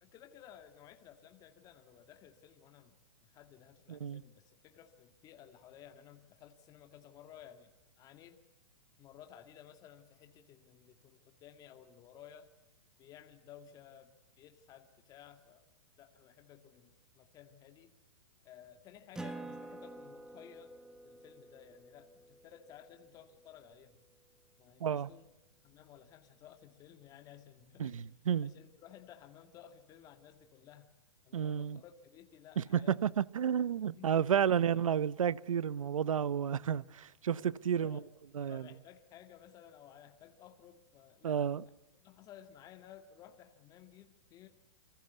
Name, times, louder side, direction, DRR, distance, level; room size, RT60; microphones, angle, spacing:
voice 1, 0.0-8.4 9.0-12.5 13.0-15.6 16.0-18.0 18.4-20.8 21.0-24.0 24.6-25.3 25.6-28.1 28.4-30.9 31.2-33.0 33.7-34.5 37.4-37.5 37.8-38.1 38.4-44.5, left 10 dB, 20° left, 1.9 m, -56 dB
voice 2, 3.9-4.2 24.8-25.1 27.8-28.5 31.3-31.8 32.6-37.4 37.6-38.0 38.3-38.7 41.2-41.6, right 8 dB, 85° right, 1.0 m, -31 dB
Acoustic guitar, 19.1-24.1, right 2 dB, 5° right, 0.9 m, -49 dB
28.5 x 25.0 x 8.1 m
hypercardioid pair, 155°, 17 cm